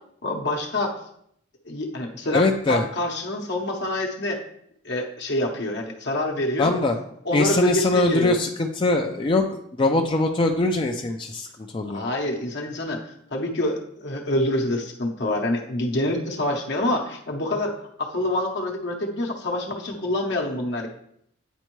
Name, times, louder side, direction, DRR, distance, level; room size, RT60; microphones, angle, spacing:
voice 1, 0.2-1.0 1.7-4.4 4.8-6.7 7.2-8.3 11.9-13.0 13.3-20.9, left 1 dB, 60° left, 2 dB, 0.9 m, -26 dB
voice 2, 2.3-2.9 6.6-7.0 7.3-11.5 11.7-12.0, left 2 dB, 25° left, 3 dB, 0.4 m, -22 dB
9.1 x 4.3 x 3.1 m, 0.70 s
head